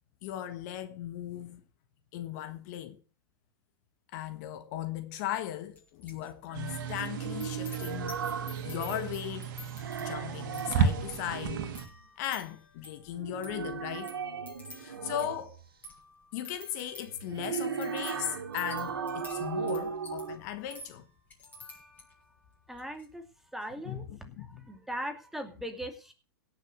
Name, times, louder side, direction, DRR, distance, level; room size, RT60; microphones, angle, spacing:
voice 1, 0.2-1.6 2.1-3.0 4.1-8.2 8.6-9.5 10.0-11.7 12.2-14.1 14.7-15.6 16.3-21.1 23.9-24.6, left 11 dB, 50° left, 1.5 m, -37 dB
sound 1, 5.7-6.3 6.5-22.3 22.7-23.1, left 3 dB, 15° left, 6.8 m, -51 dB
sound 2, 6.5-11.9, right 6 dB, 55° right, 2.2 m, -34 dB
sound 3, 6.5-9.4 9.7-12.0 13.1-15.6 17.1-20.4, right 6 dB, 85° right, 2.3 m, -37 dB
voice 2, 22.7-23.3 23.5-24.0 24.4-26.1, equal, ahead, 2.6 m, -39 dB
17.0 x 6.6 x 6.3 m
hypercardioid pair, 115°, 12 cm